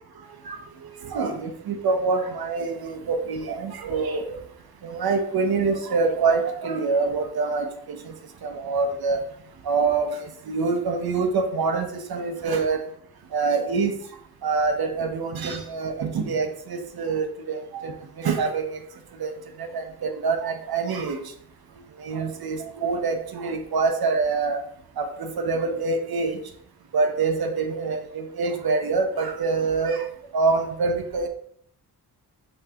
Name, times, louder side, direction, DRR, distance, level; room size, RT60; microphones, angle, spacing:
voice 1, 0.4-4.4 4.8-8.1 8.4-9.2 9.6-12.8 13.3-14.0 14.4-18.8 19.2-19.3 19.6-21.3 22.0-24.6 25.0-26.4 26.9-30.1 30.3-31.3, right 4 dB, 65° right, 6 dB, 0.7 m, -25 dB
5.4 x 2.8 x 3.4 m, 0.66 s
wide cardioid pair, 120°, 39 cm